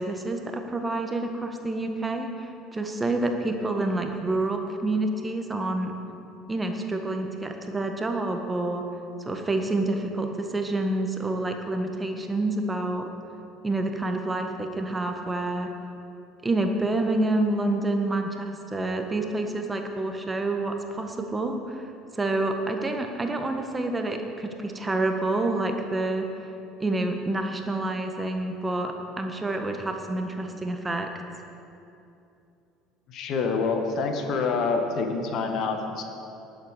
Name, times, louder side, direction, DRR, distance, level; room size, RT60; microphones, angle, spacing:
voice 1, 0.0-5.9 6.5-8.8 9.2-13.1 13.6-15.7 16.4-21.8 22.1-26.3 26.8-31.1, right 2 dB, 20° right, 4 dB, 1.4 m, -28 dB
voice 2, 33.1-36.0, left 4 dB, 50° left, 4 dB, 1.5 m, -27 dB
19.5 x 8.0 x 4.9 m, 2.8 s
figure-of-eight pair, 65°, 0 cm